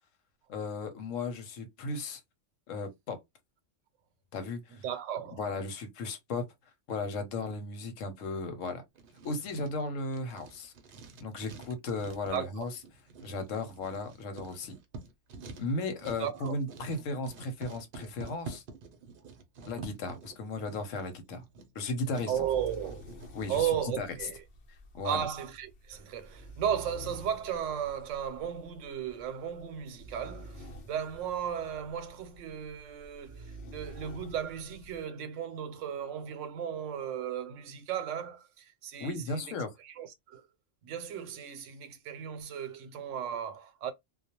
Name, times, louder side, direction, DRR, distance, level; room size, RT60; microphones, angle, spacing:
voice 1, 0.5-2.2 2.7-3.2 4.3-4.8 5.3-6.5 6.9-8.8 9.2-10.7 11.2-12.7 13.2-14.7 15.6-18.6 19.7-21.4 21.7-22.3 23.3-24.1 24.9-25.2 39.0-39.7, left 3 dB, 85° left, 1.1 m, -35 dB
voice 2, 4.8-5.4 12.3-12.7 16.2-16.5 22.3-23.2 23.5-24.4 25.0-39.6 39.8-40.4 40.8-43.9, right 9 dB, 85° right, 0.9 m, -35 dB
Writing, 8.9-23.3, right 3 dB, 55° right, 0.7 m, -49 dB
sound 1, 22.3-35.1, equal, 65° left, 0.9 m, -49 dB
2.3 x 2.1 x 2.8 m
omnidirectional pair, 1.3 m